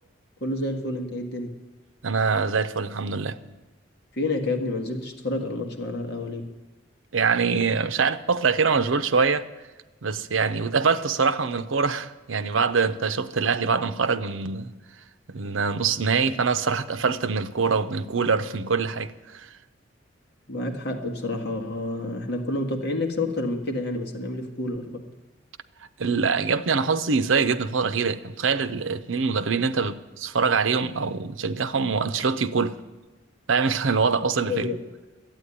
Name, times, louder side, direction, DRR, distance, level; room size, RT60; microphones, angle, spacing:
voice 1, 0.4-1.6 4.1-6.4 20.5-25.1 34.5-34.8, left 2 dB, 55° left, 1.7 m, -29 dB
voice 2, 2.0-3.4 7.1-9.4 10.0-14.7 15.3-19.5 26.0-32.8 33.5-34.8, right 5 dB, 85° right, 0.7 m, -24 dB
12.5 x 9.0 x 9.9 m
head